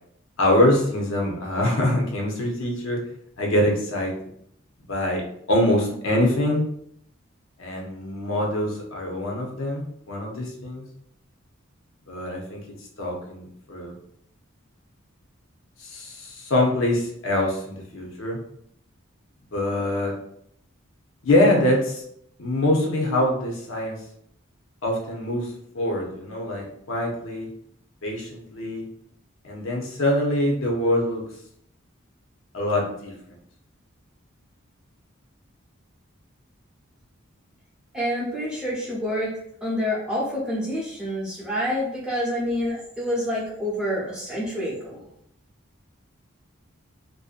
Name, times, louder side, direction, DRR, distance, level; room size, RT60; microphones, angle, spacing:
voice 1, 0.4-3.0 3.4-4.1 4.9-5.2 5.5-6.6 7.6-10.8 12.1-12.6 13.0-13.9 15.8-18.4 19.5-20.1 21.2-22.0 22.4-24.0 24.8-27.5 28.0-28.9 29.4-31.2 32.5-33.1, left 1 dB, 70° left, -1 dB, 0.7 m, -24 dB
voice 2, 37.9-39.3 39.6-45.0, equal, 5° right, -7 dB, 0.7 m, -27 dB
2.5 x 2.1 x 2.4 m, 0.71 s
head